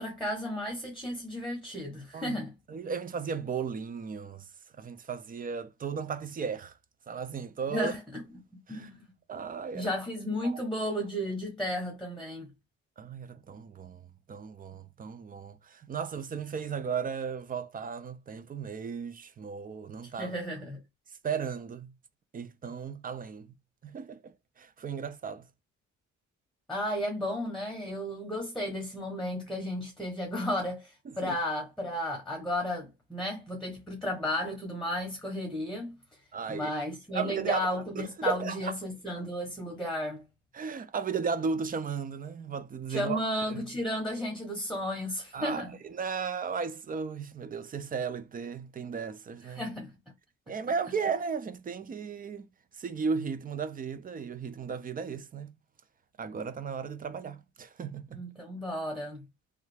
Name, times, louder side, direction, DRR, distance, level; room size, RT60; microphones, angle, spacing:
voice 1, 0.0-2.5 7.7-8.2 8.7-9.1 9.7-12.5 20.2-20.8 26.7-36.0 36.5-40.2 42.9-45.8 49.4-49.9 58.1-59.2, left 1 dB, ahead, 1.0 m, -33 dB
voice 2, 2.7-4.4 4.8-6.7 7.1-7.9 8.7-8.9 9.3-9.9 10.4-10.5 13.0-14.0 14.3-20.4 21.2-21.9 22.3-23.5 23.8-25.4 31.1-31.4 36.3-36.7 37.1-38.7 40.5-43.2 43.5-43.6 45.3-49.6 50.5-52.4 52.8-55.5 56.2-58.2, right 6 dB, 30° right, 0.4 m, -35 dB
3.2 x 2.3 x 3.2 m
cardioid pair, 90°, 30 cm